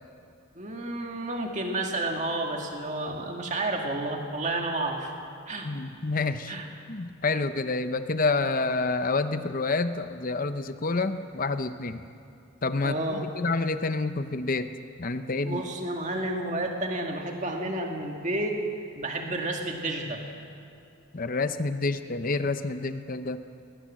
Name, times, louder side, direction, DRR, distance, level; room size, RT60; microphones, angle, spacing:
voice 1, 0.5-5.1 5.5-5.7 6.5-6.7 12.8-13.3 15.4-18.6 19.0-20.2, right 2 dB, 35° right, 2 dB, 2.1 m, -31 dB
voice 2, 5.6-6.6 6.9-12.0 12.6-14.7 15.0-15.6 21.1-23.4, left 3 dB, 40° left, 10 dB, 0.7 m, -28 dB
20.5 x 19.5 x 7.6 m, 2.6 s
head